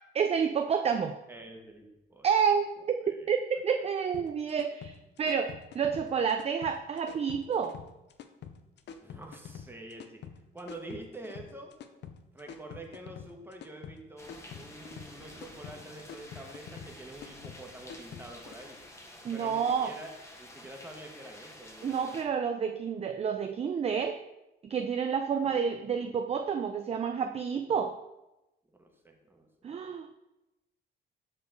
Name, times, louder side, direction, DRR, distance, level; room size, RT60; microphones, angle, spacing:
voice 1, 0.1-1.2 2.2-3.0 3.3-7.8 19.2-20.0 21.8-24.2 24.6-28.0 29.6-30.2, right 7 dB, 30° right, 6 dB, 0.4 m, -29 dB
voice 2, 1.3-2.3 3.0-3.3 9.0-10.2 10.5-11.7 12.3-18.8 19.3-20.1 20.4-22.2 25.4-26.1 28.8-29.9, right 1 dB, 10° right, 2 dB, 1.1 m, -47 dB
sound 1, 4.1-18.6, left 7 dB, 60° left, 0.5 m, -47 dB
sound 2, 14.2-22.2, left 1 dB, 15° left, 1.0 m, -50 dB
5.0 x 4.4 x 4.6 m, 0.96 s
cardioid pair, 90°, 20 cm